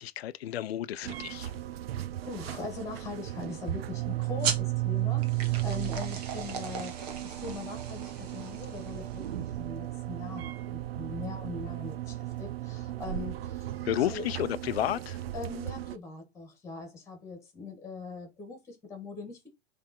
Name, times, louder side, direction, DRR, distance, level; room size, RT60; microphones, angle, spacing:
voice 1, 0.0-1.5 13.8-15.2, left 12 dB, 75° left, 0.7 m, -31 dB
sound 1, 1.0-16.0, right 15 dB, 70° right, 0.6 m, -35 dB
voice 2, 2.2-13.7 14.1-14.3 15.3-19.5, left 4 dB, 10° left, 2.0 m, -41 dB
sound 2, 4.4-9.5, right 6 dB, 40° right, 1.4 m, -38 dB
7.6 x 3.6 x 4.4 m
supercardioid pair, 170°, 31 cm